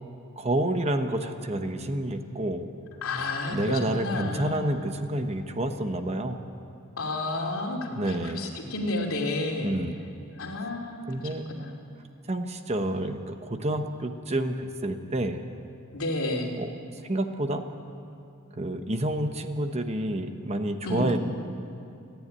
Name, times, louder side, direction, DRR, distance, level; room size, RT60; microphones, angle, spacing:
voice 1, 0.4-2.7 3.5-6.4 7.9-8.4 9.6-10.0 11.1-11.4 12.3-15.4 16.6-17.7 18.5-21.2, right 1 dB, 30° right, 7 dB, 1.0 m, -29 dB
voice 2, 3.0-4.6 7.0-9.8 10.4-11.7 15.9-16.5 20.8-21.2, left 2 dB, 70° left, 0 dB, 2.8 m, -31 dB
29.5 x 10.5 x 9.7 m, 2.6 s
head